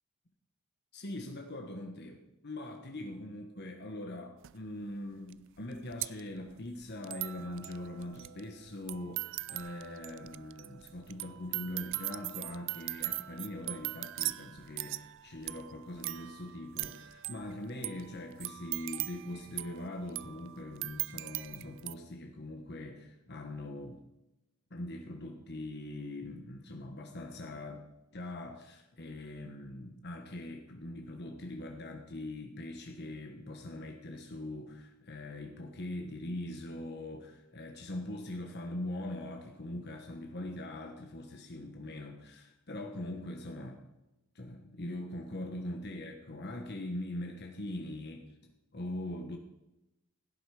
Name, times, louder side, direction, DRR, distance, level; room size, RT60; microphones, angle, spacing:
voice 1, 0.9-24.0 24.7-27.8 28.1-43.8 44.3-48.3 48.7-49.4, left 1 dB, 50° left, 3 dB, 1.3 m, -42 dB
sound 1, 4.4-4.5 5.3-5.4 5.6-21.9, right 18 dB, 55° right, 0.4 m, -40 dB
16.0 x 10.5 x 4.9 m, 0.94 s
head